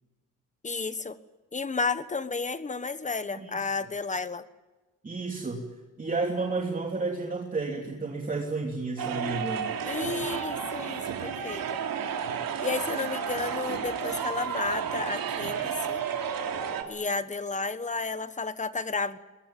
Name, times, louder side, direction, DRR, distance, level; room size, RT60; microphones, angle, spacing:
voice 1, 0.6-1.2 1.5-4.4 9.9-11.8 12.6-16.0 16.9-19.2, left 4 dB, 20° left, 12 dB, 1.3 m, -32 dB
voice 2, 3.3-3.7 5.0-9.7, right 3 dB, 25° right, 0 dB, 3.0 m, -32 dB
sound 1, 9.0-16.8, right 7 dB, 85° right, 3.3 m, -32 dB
23.5 x 22.0 x 9.2 m, 1.2 s
wide cardioid pair, 150°, 34 cm